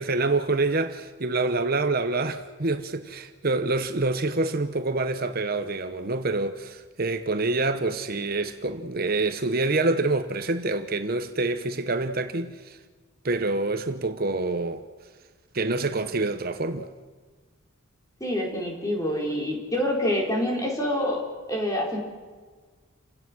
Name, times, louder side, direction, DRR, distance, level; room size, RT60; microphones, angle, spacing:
voice 1, 0.0-12.8 13.2-14.8 15.5-16.9, right 3 dB, 45° right, 0.9 m, -26 dB
voice 2, 18.2-21.2 21.5-22.0, left 1 dB, 15° left, 4.5 m, -26 dB
29.5 x 17.0 x 6.2 m
head